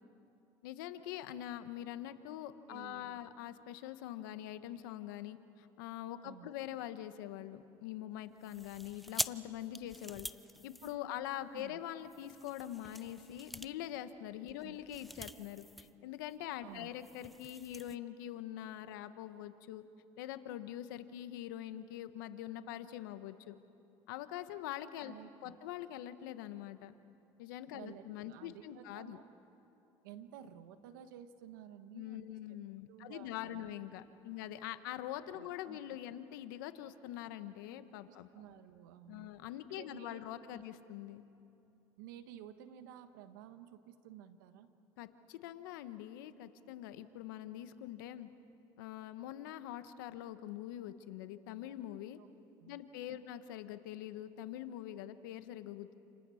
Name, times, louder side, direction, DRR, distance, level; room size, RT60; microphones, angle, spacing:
voice 1, 0.6-10.3 10.6-19.8 20.2-23.5 24.1-25.1 25.4-26.9 27.4-29.2 31.9-38.3 39.1-41.2 45.0-48.3 48.8-52.2 52.7-55.9, left 12 dB, 90° left, 11 dB, 1.3 m, -44 dB
voice 2, 2.7-3.3 6.2-6.5 10.8-11.2 11.5-11.8 14.5-14.8 16.6-16.9 25.0-25.5 27.7-29.3 30.0-32.4 32.9-33.7 34.3-34.4 35.3-36.0 38.1-39.4 39.7-40.6 42.0-44.7 52.2-52.3 52.6-52.8 53.1-53.2, right 10 dB, 90° right, 9 dB, 1.5 m, -53 dB
sound 1, 8.4-11.5 12.0-16.0 16.2-16.4 16.7-18.0, equal, ahead, 0.7 m, -45 dB
30.0 x 28.5 x 6.5 m, 2.8 s
supercardioid pair, 90°, 10 cm